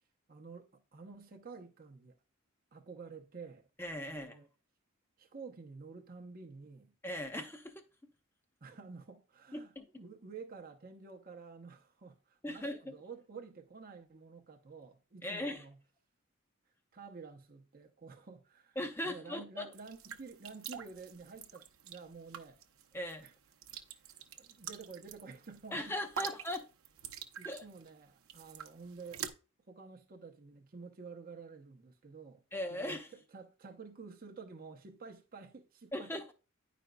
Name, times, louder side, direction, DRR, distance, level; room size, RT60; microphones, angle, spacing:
voice 1, 0.3-2.2 2.7-3.6 4.1-4.5 5.2-6.9 8.6-15.8 16.9-18.8 19.0-22.6 23.2-23.3 23.7-26.3 27.4-29.3 29.7-32.4 32.7-33.0 33.3-36.3, right 4 dB, 45° right, 0.8 m, -50 dB
voice 2, 3.8-4.4 7.0-7.8 9.5-9.9 12.4-12.9 15.2-15.6 18.8-19.7 22.9-23.2 25.7-26.6 27.4-27.6 32.5-33.1 35.9-36.3, left 1 dB, 10° left, 0.8 m, -39 dB
sound 1, 19.7-29.3, right 8 dB, 75° right, 0.7 m, -47 dB
10.5 x 5.1 x 2.2 m
head